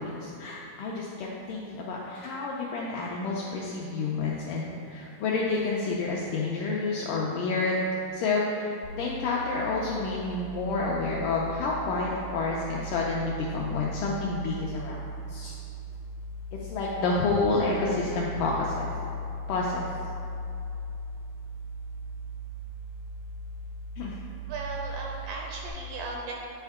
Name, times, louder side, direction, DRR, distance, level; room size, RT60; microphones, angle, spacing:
voice 1, 0.0-7.8 8.1-15.0 15.3-15.5 16.5-18.9 19.5-19.9 24.0-24.1, left 3 dB, 85° left, -3 dB, 1.8 m, -29 dB
sound 1, 8.8-25.7, right 2 dB, 65° left, 1.8 m, -38 dB
voice 2, 24.5-26.3, right 3 dB, 80° right, 0 dB, 2.0 m, -36 dB
9.8 x 4.4 x 3.6 m, 2.8 s
omnidirectional pair, 4.3 m